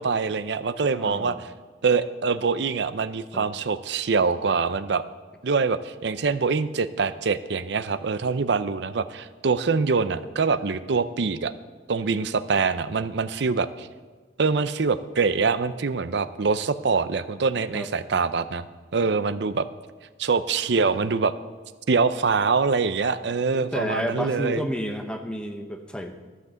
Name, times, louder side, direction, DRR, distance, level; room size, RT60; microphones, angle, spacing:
voice 1, 0.0-1.5 1.8-5.0 5.4-11.5 11.9-13.9 14.4-18.6 18.9-19.7 20.2-21.3 21.9-24.6, right 4 dB, 65° right, 13 dB, 0.5 m, -24 dB
voice 2, 0.9-1.4 3.3-3.5 17.7-17.9 23.5-26.1, equal, 5° left, 5 dB, 0.8 m, -31 dB
13.5 x 6.0 x 6.9 m, 1.4 s
head